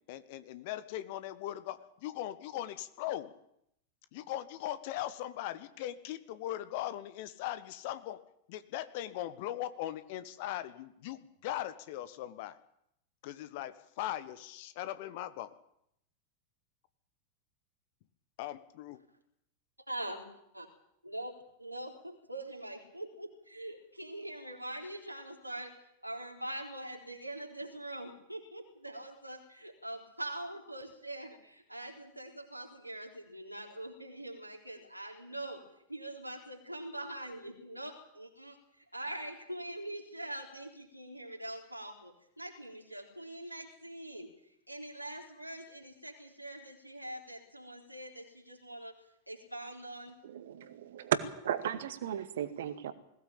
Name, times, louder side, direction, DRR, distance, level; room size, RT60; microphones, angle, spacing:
voice 1, 0.1-3.3 4.1-8.2 8.5-12.6 13.2-15.5 18.4-19.0, left 13 dB, 50° left, 13 dB, 1.4 m, -39 dB
voice 2, 19.9-20.3 20.5-20.7 21.0-21.3 21.6-25.7 26.0-35.6 35.9-44.3 44.7-48.9 49.3-50.2, right 1 dB, 90° right, 1 dB, 3.8 m, -43 dB
voice 3, 50.2-51.2 51.4-52.9, right 10 dB, 60° right, 10 dB, 2.0 m, -34 dB
21.0 x 16.5 x 8.8 m, 0.76 s
figure-of-eight pair, 90°, 0 cm